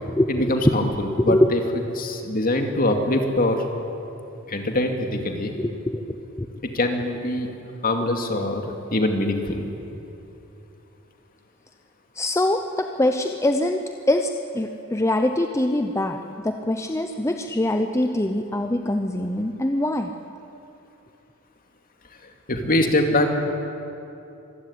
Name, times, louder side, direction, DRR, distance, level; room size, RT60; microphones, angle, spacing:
voice 1, 0.3-1.6 1.9-3.6 4.5-5.5 6.6-7.5 7.8-9.7 22.5-23.4, left 1 dB, 45° left, 4 dB, 2.5 m, -23 dB
voice 2, 5.6-6.0 6.4-6.5 12.2-20.1, left 1 dB, 15° left, 6 dB, 0.7 m, -23 dB
25.5 x 15.5 x 10.0 m, 2.8 s
head